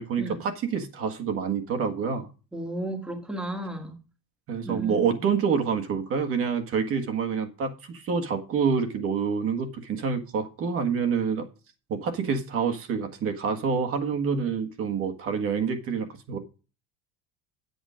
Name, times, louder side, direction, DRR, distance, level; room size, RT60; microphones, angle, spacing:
voice 1, 0.0-2.3 4.5-11.5 11.9-16.4, right 6 dB, 45° right, 1.6 m, -27 dB
voice 2, 2.5-4.0 4.6-5.1, right 2 dB, 5° right, 1.6 m, -34 dB
8.9 x 8.3 x 5.0 m
cardioid pair, 150°, 32 cm